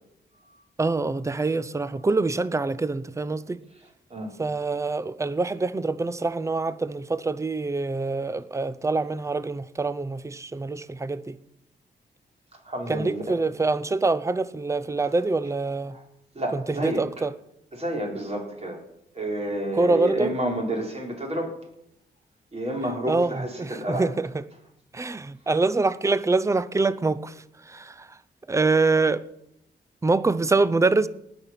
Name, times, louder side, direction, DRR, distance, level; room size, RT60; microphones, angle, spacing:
voice 1, 0.8-3.6 4.4-11.4 12.9-16.0 16.5-17.4 19.7-20.4 23.1-24.4 24.9-27.3 27.7-28.1 28.5-29.2 30.0-31.1, right 3 dB, 15° right, 0.6 m, -25 dB
voice 2, 12.7-13.4 16.4-17.1 17.7-18.8 19.2-21.5 22.5-24.1, right 1 dB, 35° right, 4.0 m, -29 dB
18.5 x 7.0 x 5.8 m
cardioid pair, 85°, 18 cm